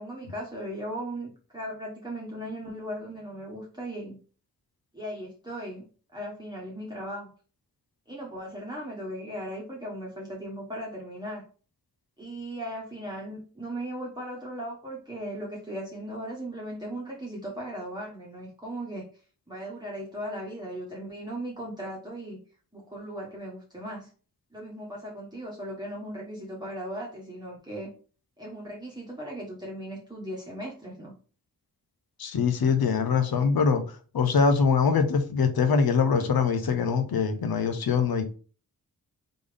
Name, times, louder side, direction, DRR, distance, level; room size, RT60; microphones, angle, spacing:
voice 1, 0.0-4.2 4.9-5.8 6.1-7.3 8.1-11.4 12.2-19.1 19.5-22.4 22.7-24.1 24.5-27.9 28.4-31.1, right 1 dB, 10° right, 1.1 m, -37 dB
voice 2, 32.2-33.8 34.1-38.2, left 5 dB, 90° left, 0.7 m, -23 dB
3.9 x 3.4 x 3.4 m
wide cardioid pair, 70°, 35 cm